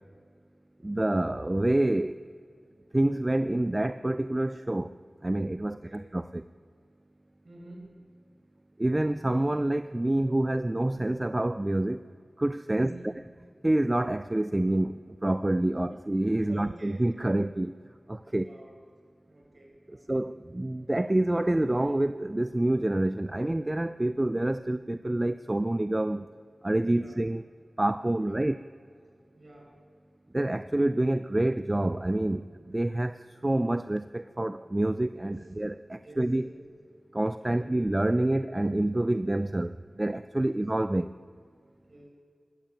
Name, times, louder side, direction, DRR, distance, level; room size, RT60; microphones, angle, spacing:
voice 1, 0.8-2.3 2.9-4.9 5.2-6.5 8.8-12.1 12.4-12.9 13.6-17.7 18.1-18.5 20.1-26.3 26.6-27.4 27.8-28.6 30.3-36.5 37.1-41.1, right 1 dB, 25° right, 12 dB, 0.5 m, -27 dB
voice 2, 5.6-6.1 7.4-7.9 12.7-13.1 16.4-17.0 18.4-18.8 19.2-20.1 26.8-27.2 28.2-28.4 29.4-29.8 35.2-35.4 36.0-36.6 37.5-37.7 40.5-40.6 41.9-42.1, right 1 dB, 50° right, -1 dB, 6.8 m, -50 dB
19.0 x 14.5 x 9.4 m, 2.2 s
wide cardioid pair, 65°, 0 cm